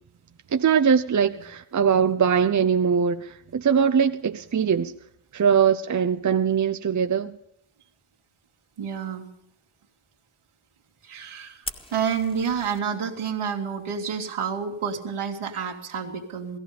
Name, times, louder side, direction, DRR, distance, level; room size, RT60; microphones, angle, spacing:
voice 1, 0.5-4.9 5.3-7.4, right 7 dB, 35° right, 0.8 m, -21 dB
voice 2, 8.8-9.3 11.0-11.6 11.9-16.6, right 7 dB, 80° right, 2.5 m, -29 dB
Fire, 11.6-12.8, left 1 dB, 10° left, 1.9 m, -39 dB
17.0 x 15.5 x 5.1 m
cardioid pair, 55°, 49 cm